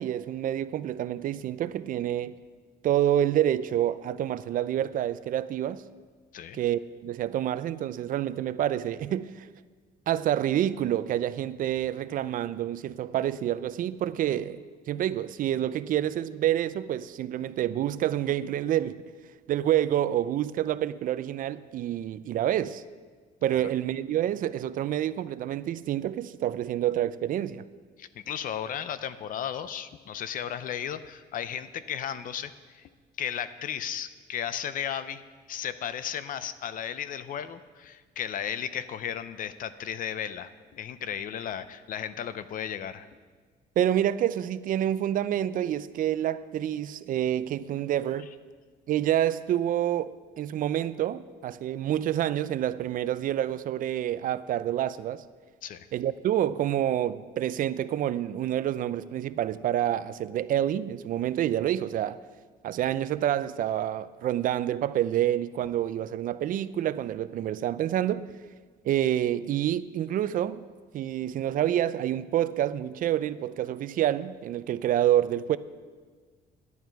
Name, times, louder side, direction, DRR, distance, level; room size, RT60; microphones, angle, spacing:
voice 1, 0.0-2.3 2.8-5.8 6.5-9.5 10.1-14.6 14.9-19.0 19.5-22.8 23.4-27.6 43.8-48.3 48.9-55.2 55.9-62.2 62.6-68.2 68.8-70.6 70.9-75.6, right 11 dB, 55° right, 0.4 m, -28 dB
voice 2, 28.0-32.9 33.2-35.2 35.5-43.1 55.6-55.9, left 9 dB, 55° left, 0.6 m, -35 dB
11.0 x 11.0 x 4.6 m
cardioid pair, 110°, 17 cm